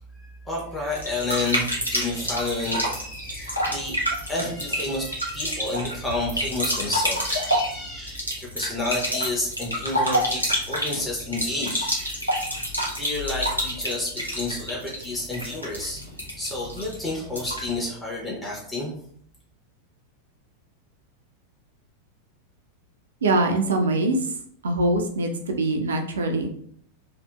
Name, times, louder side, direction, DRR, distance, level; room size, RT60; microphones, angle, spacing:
voice 1, 0.4-12.3 13.0-16.0 16.4-18.9, left 2 dB, 10° left, -4 dB, 0.7 m, -30 dB
sound 1, 0.9-17.8, equal, 90° left, 0.6 m, -28 dB
voice 2, 23.2-24.2 24.6-26.5, right 2 dB, 65° right, 4 dB, 0.4 m, -23 dB
2.7 x 2.1 x 2.2 m, 0.63 s
figure-of-eight pair, 90°, 0 cm